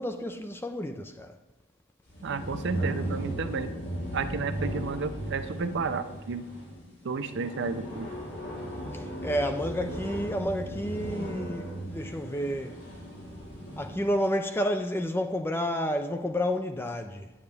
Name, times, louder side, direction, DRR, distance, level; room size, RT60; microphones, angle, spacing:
voice 1, 0.0-1.4 8.9-12.9 13.8-17.3, equal, 10° left, 0.4 m, -30 dB
sound 1, 2.1-14.1, equal, 50° left, 2.3 m, -36 dB
voice 2, 2.2-3.7 4.1-6.5 7.0-8.1, right 4 dB, 55° right, 0.5 m, -32 dB
8.7 x 8.2 x 3.3 m
head